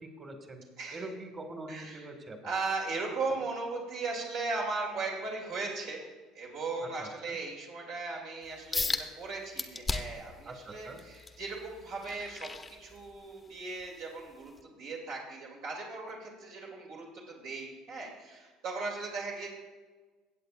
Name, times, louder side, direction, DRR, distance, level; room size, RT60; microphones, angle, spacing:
voice 1, 0.0-0.6 0.9-2.5 7.0-7.4 10.5-11.0, right 2 dB, 30° right, 4 dB, 1.8 m, -44 dB
voice 2, 0.8-1.1 1.7-2.1 2.4-6.0 6.3-19.5, right 3 dB, 75° right, -3 dB, 2.7 m, -37 dB
sound 1, 8.7-9.1 9.6-10.3 10.8-13.3 13.8-14.0 14.6-14.7, left 3 dB, 20° left, 0.8 m, -35 dB
16.5 x 8.0 x 2.5 m, 1.4 s
supercardioid pair, 85°, 0 cm